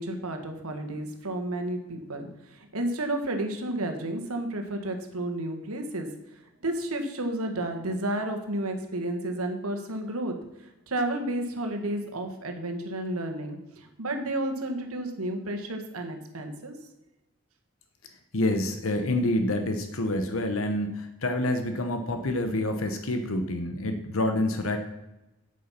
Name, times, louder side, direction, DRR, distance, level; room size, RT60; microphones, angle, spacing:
voice 1, 0.0-6.1 6.6-10.4 10.6-16.8, right 1 dB, 90° right, 5 dB, 1.7 m, -32 dB
voice 2, 18.3-24.8, left 1 dB, 70° left, 7 dB, 1.0 m, -27 dB
8.4 x 8.3 x 5.8 m, 0.96 s
head